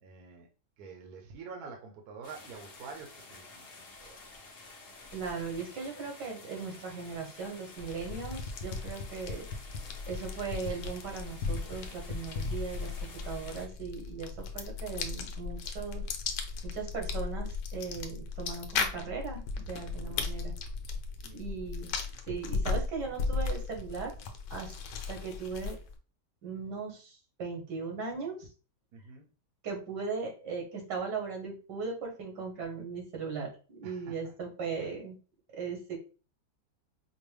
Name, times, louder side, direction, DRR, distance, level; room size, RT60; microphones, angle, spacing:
voice 1, 0.0-0.5 0.8-3.7 4.0-4.2 21.2-21.4 21.9-22.3 28.9-29.3 33.8-34.1, right 5 dB, 65° right, 3 dB, 1.2 m, -47 dB
sound 1, 2.2-13.7, left 3 dB, 50° left, 0.8 m, -51 dB
voice 2, 5.1-9.5 10.1-12.9 13.2-16.0 16.6-20.5 21.3-21.9 22.3-24.1 24.5-24.7 25.1-25.8 26.4-28.5 29.6-35.2 35.5-36.0, right 5 dB, 85° right, 2 dB, 1.8 m, -38 dB
sound 2, 7.8-26.0, left 4 dB, 90° left, 1.3 m, -36 dB
5.2 x 2.1 x 3.3 m, 0.35 s
omnidirectional pair, 1.8 m